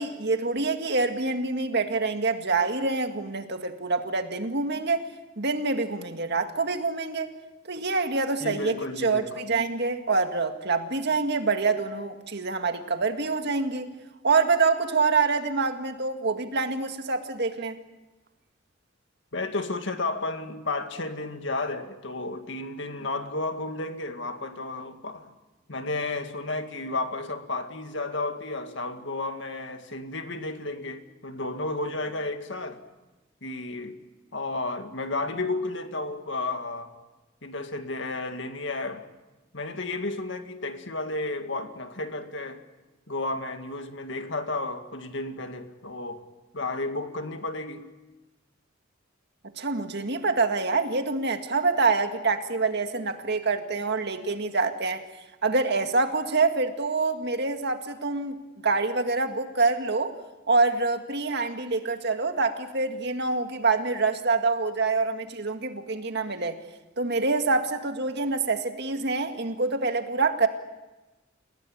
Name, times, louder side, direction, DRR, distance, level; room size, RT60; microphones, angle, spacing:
voice 1, 0.0-5.0 5.4-7.3 7.7-8.8 9.0-13.9 14.2-17.8 49.6-55.0 55.4-58.4 58.6-60.2 60.5-66.6 67.0-70.5, right 3 dB, 55° right, 7 dB, 2.0 m, -26 dB
voice 2, 8.4-9.3 19.3-25.3 25.7-32.8 33.4-34.0 34.3-36.9 37.4-39.1 39.5-42.6 43.1-46.2 46.5-47.8, left 2 dB, 65° left, 7 dB, 2.1 m, -32 dB
29.5 x 18.0 x 8.8 m, 1.1 s
head